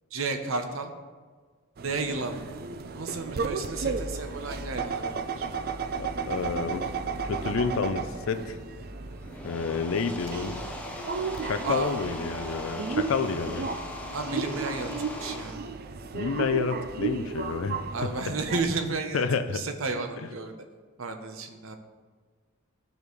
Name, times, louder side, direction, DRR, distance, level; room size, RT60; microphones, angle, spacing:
voice 1, 0.1-0.9 1.8-2.4 2.9-5.4 11.6-11.9 14.1-14.9 15.2-15.6 17.9-19.2 19.5-20.5 21.0-21.8, right 3 dB, 65° right, 6 dB, 0.8 m, -32 dB
sound 1, 1.8-18.6, right 5 dB, 45° right, 0.4 m, -34 dB
sound 2, 3.6-18.9, equal, 20° right, 2.3 m, -46 dB
voice 2, 6.0-6.9 7.2-8.6 9.4-10.6 11.4-13.7 16.1-17.8 19.1-19.6, left 5 dB, 65° left, 9 dB, 0.4 m, -29 dB
sound 3, 9.1-15.5, left 2 dB, 5° left, 0.6 m, -40 dB
12.5 x 5.1 x 3.2 m, 1.5 s
head